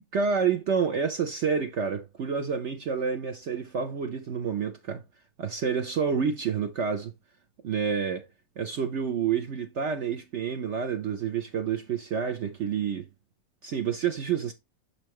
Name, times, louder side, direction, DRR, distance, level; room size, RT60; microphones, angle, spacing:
voice 1, 0.1-5.0 5.4-7.1 7.6-8.3 8.6-13.1 13.6-14.5, right 6 dB, 60° right, 0.7 m, -28 dB
6.5 x 5.7 x 3.0 m
omnidirectional pair, 1.9 m